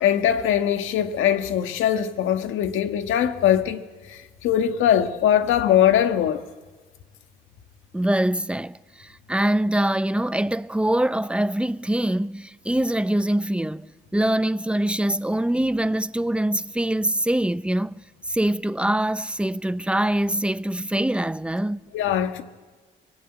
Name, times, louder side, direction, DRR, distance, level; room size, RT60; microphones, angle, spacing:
voice 1, 0.0-3.8 4.1-6.4 21.9-22.4, left 10 dB, 85° left, 1.6 m, -21 dB
voice 2, 7.9-13.9 14.1-21.8, right 1 dB, 5° right, 0.7 m, -24 dB
24.0 x 19.5 x 9.0 m
cardioid pair, 90°, 20 cm